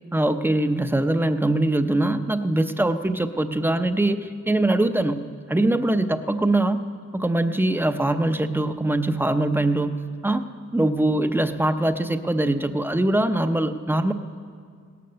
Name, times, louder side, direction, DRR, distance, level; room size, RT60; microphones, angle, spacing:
voice 1, 0.1-5.2 5.5-6.8 7.1-10.4 10.7-14.1, right 1 dB, 5° right, 9 dB, 0.6 m, -22 dB
17.5 x 12.0 x 6.8 m, 2.1 s
wide cardioid pair, 120°, 30 cm